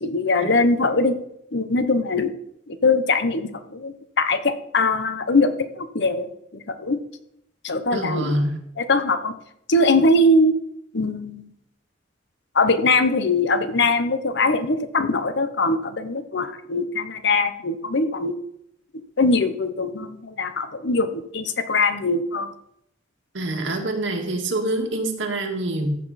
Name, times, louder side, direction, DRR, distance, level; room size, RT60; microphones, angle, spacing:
voice 1, 0.0-1.2 1.5-2.3 2.7-7.0 7.6-8.4 8.8-9.3 9.7-10.5 10.9-11.5 12.5-18.4 19.2-22.5, left 2 dB, 65° left, 10 dB, 0.9 m, -21 dB
voice 2, 7.9-8.6 23.3-25.9, right 1 dB, 90° right, 2 dB, 1.9 m, -25 dB
14.5 x 6.8 x 4.2 m, 0.77 s
head